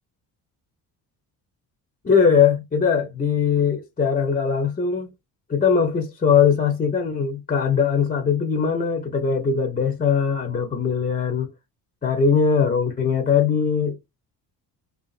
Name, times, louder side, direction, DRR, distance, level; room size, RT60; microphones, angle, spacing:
voice 1, 2.0-5.1 5.5-11.5 12.0-14.0, left 6 dB, 20° left, 0.5 m, -20 dB
2.6 x 2.4 x 2.5 m
supercardioid pair, 60°, 48 cm